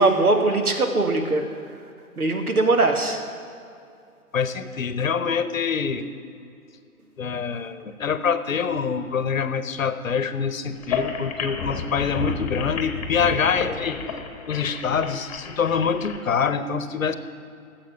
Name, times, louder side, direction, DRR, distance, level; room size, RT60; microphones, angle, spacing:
voice 1, 0.0-1.4 2.2-3.2, right 2 dB, 80° right, 5 dB, 1.6 m, -20 dB
voice 2, 4.3-6.1 7.2-14.0 14.5-17.2, left 6 dB, 65° left, 12 dB, 0.9 m, -25 dB
sound 1, 10.7-16.2, left 5 dB, 25° left, 1.1 m, -31 dB
14.5 x 7.5 x 5.8 m, 2.5 s
figure-of-eight pair, 135°, 44 cm